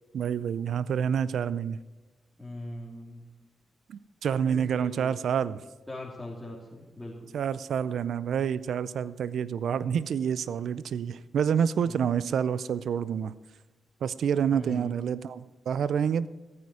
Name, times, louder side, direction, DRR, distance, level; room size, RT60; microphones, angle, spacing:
voice 1, 0.1-1.8 3.9-5.6 7.3-13.3 14.0-16.3, right 7 dB, 75° right, 17 dB, 0.5 m, -28 dB
voice 2, 2.4-3.3 4.4-5.1 5.9-7.3 11.8-12.1 14.5-14.9, left 1 dB, 5° left, -6 dB, 2.9 m, -41 dB
14.5 x 9.4 x 4.8 m, 1.2 s
supercardioid pair, 50°, 0 cm